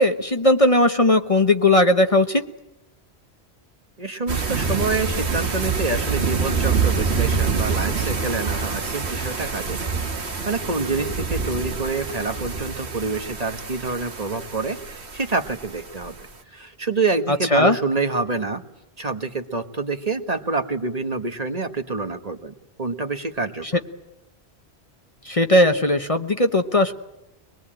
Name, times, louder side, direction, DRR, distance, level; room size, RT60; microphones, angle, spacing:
voice 1, 0.0-2.4 17.5-17.8 25.3-26.9, left 1 dB, 35° left, 6 dB, 1.1 m, -17 dB
voice 2, 4.0-9.9 10.2-16.1 16.5-18.6 19.0-22.5 22.8-23.8, right 3 dB, 35° right, 6 dB, 1.5 m, -27 dB
sound 1, 4.3-16.2, right 5 dB, 80° right, 1.9 m, -26 dB
24.5 x 20.5 x 8.9 m, 0.92 s
omnidirectional pair, 1.1 m